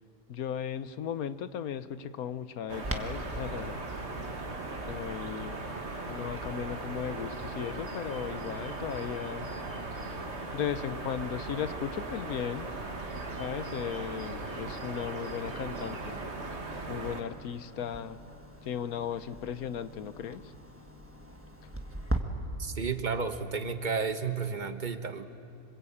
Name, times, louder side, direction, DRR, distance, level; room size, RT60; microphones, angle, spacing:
voice 1, 0.3-3.8 4.8-5.6 6.1-9.5 9.9-10.3 10.5-12.7 13.3-16.2 16.9-18.2 18.6-20.5, left 8 dB, 85° left, 13 dB, 1.3 m, -36 dB
sound 1, 2.7-17.2, right 3 dB, 50° right, 2.0 m, -38 dB
Clock, 2.8-22.2, right 1 dB, 10° right, 1.5 m, -44 dB
voice 2, 22.6-25.2, right 5 dB, 35° right, 8 dB, 1.3 m, -32 dB
26.5 x 24.5 x 8.7 m, 2.5 s
omnidirectional pair, 1.5 m